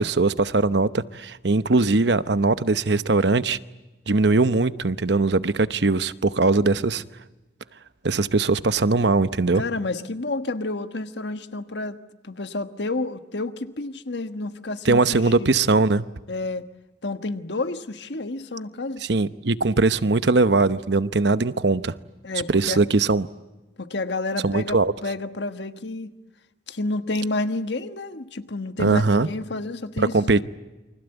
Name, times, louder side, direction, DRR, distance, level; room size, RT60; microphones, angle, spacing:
voice 1, 0.0-3.6 4.1-7.0 8.0-9.6 14.8-16.1 19.0-21.9 22.5-23.3 24.4-24.9 28.8-29.3 30.0-30.4, right 3 dB, 75° right, 13 dB, 0.9 m, -20 dB
voice 2, 9.5-12.0 12.2-15.5 16.3-16.7 17.0-19.0 22.2-22.8 23.8-26.1 26.7-30.4, left 2 dB, 75° left, 9 dB, 1.4 m, -30 dB
29.0 x 24.5 x 8.1 m, 1.1 s
head